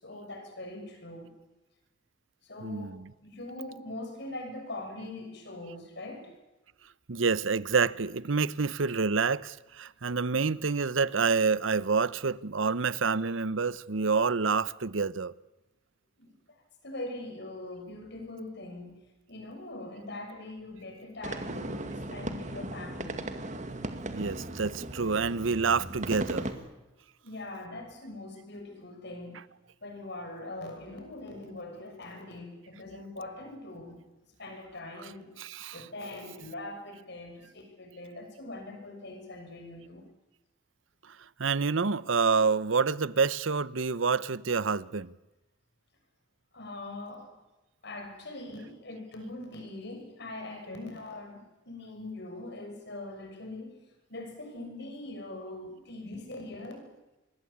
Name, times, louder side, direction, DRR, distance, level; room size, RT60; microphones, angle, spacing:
voice 1, 0.0-1.3 2.4-6.3 10.3-10.5 16.2-16.6 16.8-19.0 19.3-23.4 27.2-29.4 29.8-34.0 34.4-40.0 46.5-47.3 47.8-53.8 54.1-56.9, left 2 dB, 60° left, 6.9 m, -42 dB
voice 2, 2.6-3.1 7.1-15.3 24.1-26.5 29.3-29.4 35.0-35.9 41.4-45.1, right 5 dB, 75° right, 0.8 m, -28 dB
sound 1, 21.2-26.5, right 1 dB, 40° right, 2.2 m, -37 dB
26.0 x 21.5 x 8.6 m
head